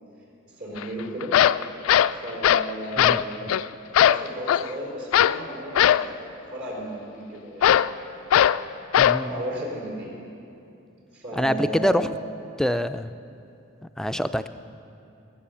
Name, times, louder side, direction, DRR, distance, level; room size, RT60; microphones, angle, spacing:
voice 1, 0.6-1.3 2.2-3.6 4.0-8.9 9.2-10.1 11.1-12.0, right 1 dB, 65° right, -2 dB, 4.8 m, -35 dB
sound 1, 0.8-0.9 1.2-2.7 3.0-3.2 3.5-3.6 3.9-4.7 5.1-5.4 5.7-6.1 7.6-7.9 8.3-8.6 8.9-9.2, left 10 dB, 90° left, 0.3 m, -19 dB
voice 2, 9.0-9.3 11.4-12.1 12.6-13.1 14.0-14.5, equal, 5° left, 10 dB, 0.3 m, -25 dB
22.5 x 7.6 x 7.1 m, 2.7 s
head